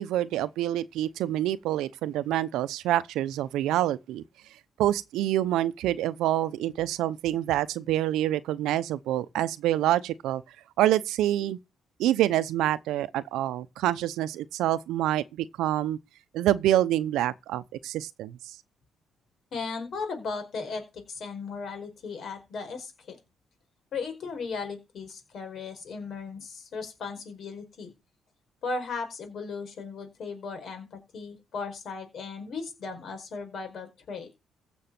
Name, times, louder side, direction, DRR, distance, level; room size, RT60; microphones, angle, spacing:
voice 1, 0.0-4.2 4.8-10.4 10.8-11.6 12.0-16.0 16.3-18.6, right 13 dB, 90° right, 0.8 m, -27 dB
voice 2, 19.5-23.2 23.9-27.9 28.6-34.3, left 4 dB, 60° left, 5.0 m, -36 dB
15.5 x 6.3 x 6.0 m
cardioid pair, 90°, 0 cm